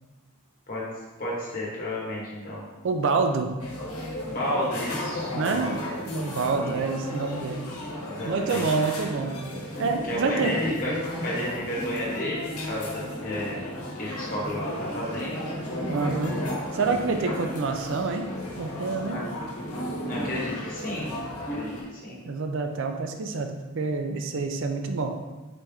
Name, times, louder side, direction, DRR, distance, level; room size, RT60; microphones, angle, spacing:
voice 1, 1.2-2.6 4.3-5.7 6.6-6.8 8.0-8.7 10.1-10.9 11.2-13.6 14.0-15.6 17.2-17.3 19.1-19.2 20.1-21.2 21.5-22.2, left 1 dB, 40° left, -6 dB, 1.3 m, -32 dB
voice 2, 2.8-3.5 5.3-5.8 6.1-7.7 8.2-9.4 9.8-10.6 15.9-16.4 16.7-18.3 18.6-19.2 22.3-25.2, right 4 dB, 55° right, 5 dB, 0.4 m, -27 dB
sound 1, 3.6-21.8, left 1 dB, 90° left, 1.0 m, -34 dB
4.2 x 3.3 x 3.4 m, 1.2 s
head